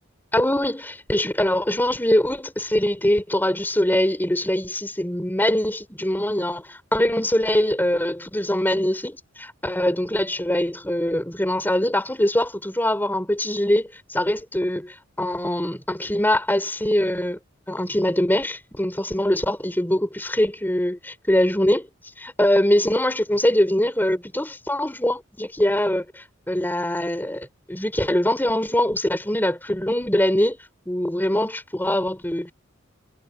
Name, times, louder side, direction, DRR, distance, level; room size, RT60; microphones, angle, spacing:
voice 1, 0.3-17.4 17.7-21.9 22.2-30.6 30.9-32.5, left 1 dB, 10° left, 3.7 m, -23 dB
head